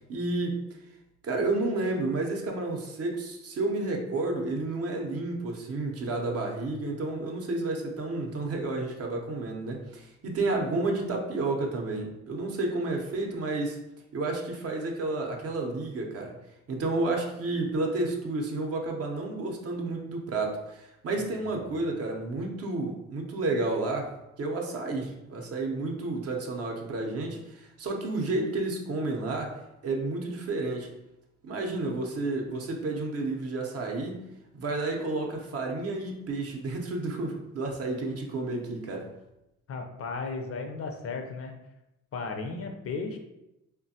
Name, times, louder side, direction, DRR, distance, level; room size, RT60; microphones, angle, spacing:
voice 1, 0.1-0.6 1.2-13.8 14.1-16.3 16.7-30.9 31.4-34.2 34.5-39.1, right 2 dB, 55° right, 1 dB, 0.7 m, -31 dB
voice 2, 39.7-41.5 42.1-43.2, left 4 dB, 50° left, 4 dB, 0.5 m, -35 dB
3.3 x 2.2 x 2.7 m, 0.90 s
cardioid pair, 90°, 30 cm